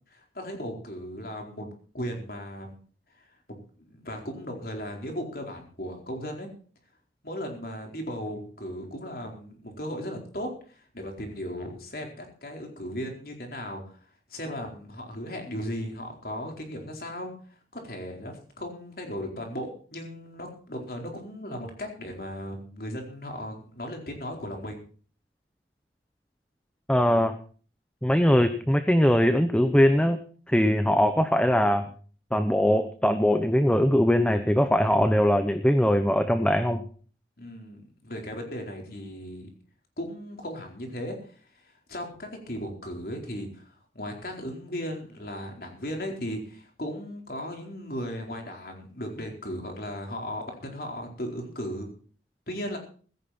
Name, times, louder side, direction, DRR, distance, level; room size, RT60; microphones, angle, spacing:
voice 1, 0.1-1.7 1.9-2.8 3.2-3.3 3.8-6.5 7.2-14.0 14.3-17.3 17.7-24.8 37.4-39.5 40.0-41.2 41.6-43.7 43.9-51.9 52.5-52.8, equal, 55° left, 2 dB, 4.3 m, -36 dB
voice 2, 26.9-27.4 28.0-30.2 30.5-31.8 32.3-36.8, equal, 5° left, 9 dB, 0.8 m, -21 dB
16.0 x 14.0 x 4.4 m, 0.42 s
head